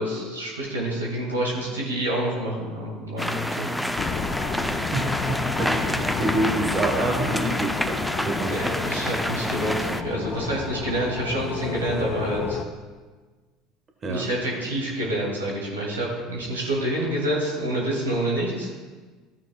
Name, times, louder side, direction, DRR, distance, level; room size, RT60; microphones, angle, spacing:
voice 1, 0.0-3.7 8.4-12.6 14.0-18.7, right 1 dB, 85° right, -3 dB, 2.3 m, -27 dB
sound 1, 3.2-10.0, equal, 5° left, 0.5 m, -28 dB
sound 2, 4.0-12.6, left 7 dB, 45° left, 0.6 m, -31 dB
voice 2, 4.6-8.9 14.0-14.3, right 2 dB, 35° right, 2 dB, 1.4 m, -28 dB
14.0 x 8.4 x 2.4 m, 1.4 s
hypercardioid pair, 70°, 0 cm